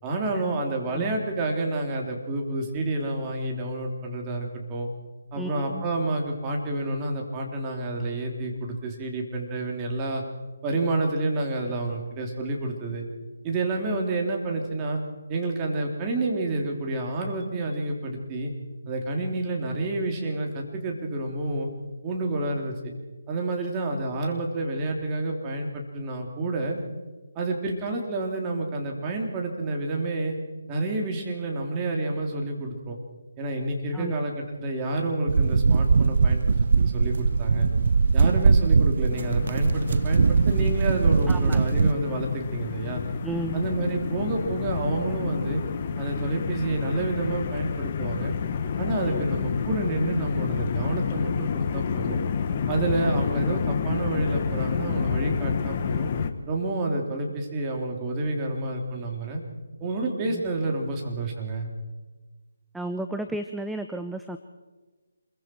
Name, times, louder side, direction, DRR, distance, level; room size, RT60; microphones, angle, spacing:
voice 1, 0.0-4.9 5.3-10.2 10.6-13.0 13.4-15.0 15.3-18.5 18.9-21.7 22.0-22.7 23.3-26.8 27.3-30.3 30.7-33.0 33.4-37.7 38.1-43.0 43.5-45.6 46.0-48.4 48.8-52.2 52.7-56.1 56.5-59.4 59.8-61.7, right 2 dB, 20° right, 0 dB, 3.1 m, -29 dB
voice 2, 5.4-5.8 23.6-23.7 33.9-34.2 41.3-41.6 43.2-43.6 49.1-49.2 60.3-60.4 62.7-64.4, right 2 dB, 5° right, 7 dB, 0.6 m, -33 dB
sound 1, 35.3-41.9, right 5 dB, 55° right, 0.5 m, -21 dB
sound 2, 39.1-56.3, left 7 dB, 35° left, 1.3 m, -29 dB
27.0 x 22.0 x 4.5 m, 1.3 s
figure-of-eight pair, 150°, 0 cm